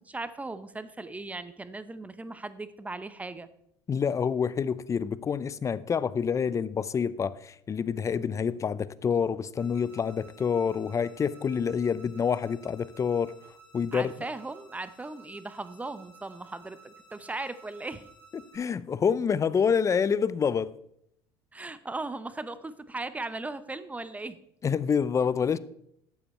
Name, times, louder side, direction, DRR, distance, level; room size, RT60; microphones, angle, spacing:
voice 1, 0.0-3.5 13.9-18.1 21.5-24.4, right 2 dB, 15° right, 0.8 m, -38 dB
voice 2, 3.9-13.3 13.7-14.1 18.3-20.7 24.6-25.6, left 6 dB, 30° left, 0.5 m, -27 dB
sound 1, 9.6-18.6, right 3 dB, 5° left, 5.0 m, -55 dB
12.0 x 7.8 x 4.4 m
supercardioid pair, 90°, 11 cm